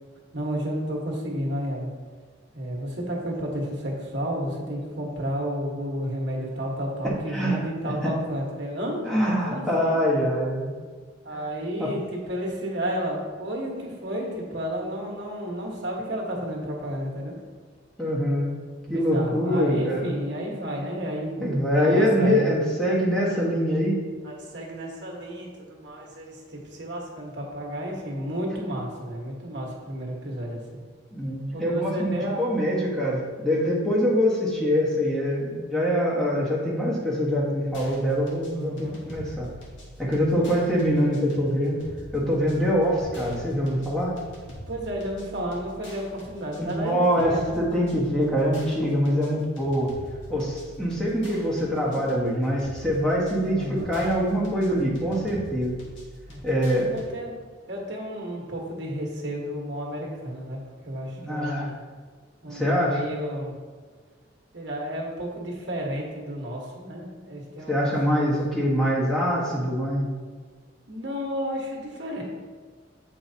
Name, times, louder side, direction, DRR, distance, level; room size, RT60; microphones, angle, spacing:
voice 1, 0.3-1.9 2.5-9.0 9.4-10.0 11.2-17.3 18.9-21.4 21.8-22.5 24.2-30.8 31.5-32.5 38.5-39.0 44.7-47.6 51.8-52.0 53.6-53.9 56.3-56.4 56.9-57.4 57.7-61.8 62.4-63.5 64.5-68.3 70.9-72.2, equal, 65° right, -2 dB, 1.3 m, -32 dB
voice 2, 7.0-8.1 9.0-10.7 11.3-11.5 11.8-11.9 18.0-18.5 18.9-20.1 21.4-24.0 31.1-39.5 40.0-41.8 42.1-44.2 46.6-49.9 50.3-55.8 56.4-56.9 61.2-61.7 62.5-63.0 67.7-70.1, equal, 5° left, -5 dB, 1.1 m, -24 dB
sound 1, 37.7-57.1, equal, 75° left, 1.6 m, -44 dB
7.7 x 4.7 x 2.8 m, 1.5 s
head